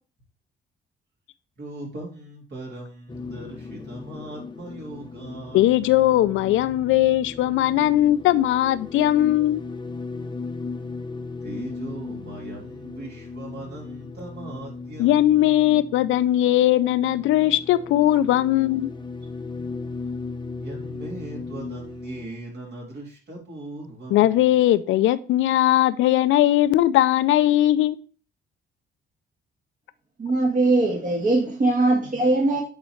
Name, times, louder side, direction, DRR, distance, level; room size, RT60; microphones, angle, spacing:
voice 1, 1.6-5.6 11.4-15.3 20.6-24.4, right 2 dB, 55° right, 3.2 m, -39 dB
sound 1, 3.1-22.3, left 4 dB, 25° left, 0.7 m, -37 dB
voice 2, 5.5-9.6 15.0-18.9 24.1-28.0, left 13 dB, 80° left, 0.5 m, -19 dB
voice 3, 30.2-32.6, right 2 dB, 40° right, 1.6 m, -21 dB
8.8 x 4.1 x 3.2 m
cardioid pair, 90°, 20 cm